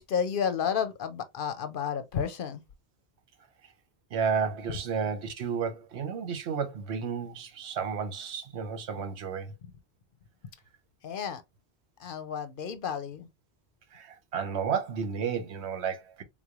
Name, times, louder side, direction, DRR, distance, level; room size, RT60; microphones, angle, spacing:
voice 1, 0.0-2.6 11.0-11.4 12.0-13.3, left 7 dB, 60° left, 0.7 m, -31 dB
voice 2, 4.1-9.5 13.9-16.2, right 6 dB, 90° right, 1.0 m, -32 dB
3.7 x 3.1 x 2.3 m
omnidirectional pair, 1.1 m